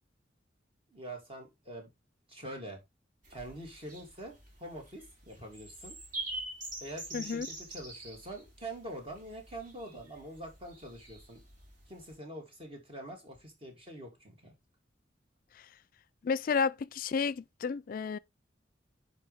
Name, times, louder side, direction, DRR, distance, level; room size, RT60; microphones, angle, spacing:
voice 1, 0.9-1.9 2.3-2.8 3.3-6.0 6.8-11.4 11.9-14.5, right 1 dB, 30° right, 2.9 m, -45 dB
sound 1, 3.2-12.1, right 2 dB, 50° right, 3.3 m, -45 dB
voice 2, 7.1-7.5 16.2-18.2, left 5 dB, 50° left, 0.4 m, -31 dB
9.9 x 5.1 x 3.5 m
head